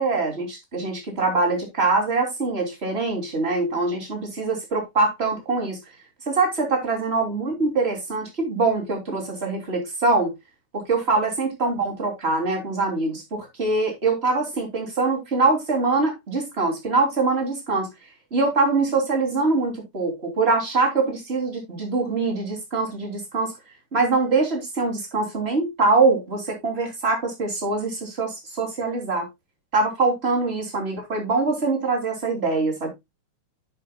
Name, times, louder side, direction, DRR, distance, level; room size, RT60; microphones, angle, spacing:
voice 1, 0.0-5.8 6.3-10.3 10.7-17.9 18.3-23.5 23.9-29.3 29.7-32.9, right 3 dB, 20° right, 3.1 m, -23 dB
10.5 x 7.6 x 2.3 m
omnidirectional pair, 3.4 m